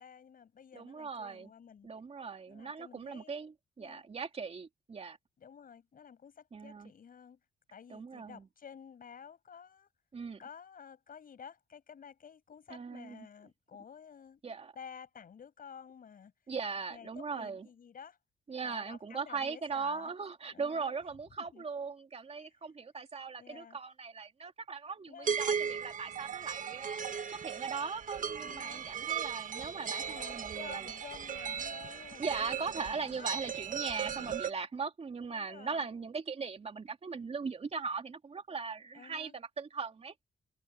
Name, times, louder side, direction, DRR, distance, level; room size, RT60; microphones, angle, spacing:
voice 1, 0.0-1.9 2.5-3.5 3.8-4.1 5.4-7.4 7.7-9.9 10.4-14.4 14.8-16.3 16.9-18.2 18.6-20.1 20.5-21.0 21.4-21.6 23.4-23.8 25.1-25.3 28.4-28.9 30.1-33.3 34.0-34.4 35.3-35.9 38.9-39.3, left 7 dB, 55° left, 7.2 m, -52 dB
voice 2, 0.7-1.5 1.8-5.2 6.5-6.9 7.9-8.5 10.1-10.4 12.7-13.3 14.4-14.7 16.5-17.7 18.5-27.0 27.3-30.9 32.2-40.1, right 5 dB, 35° right, 2.6 m, -39 dB
sound 1, 25.2-34.5, right 7 dB, 50° right, 1.4 m, -37 dB
cardioid pair, 95°, 17 cm